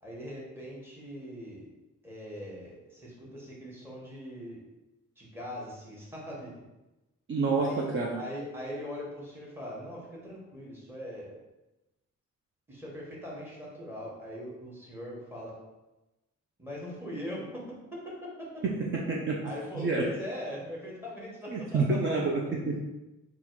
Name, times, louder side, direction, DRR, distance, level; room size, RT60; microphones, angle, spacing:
voice 1, 0.0-1.7 2.0-4.6 5.2-6.5 7.6-7.9 8.1-11.3 12.7-15.6 16.6-17.8 18.0-18.6 19.4-22.1 22.4-22.5, equal, 5° right, -4 dB, 1.2 m, -41 dB
voice 2, 7.3-7.7 7.9-8.2 19.1-19.4 19.8-20.1 21.5-22.8, right 3 dB, 40° right, -2 dB, 0.5 m, -28 dB
3.9 x 2.4 x 4.5 m, 1.0 s
cardioid pair, 130°, 30 cm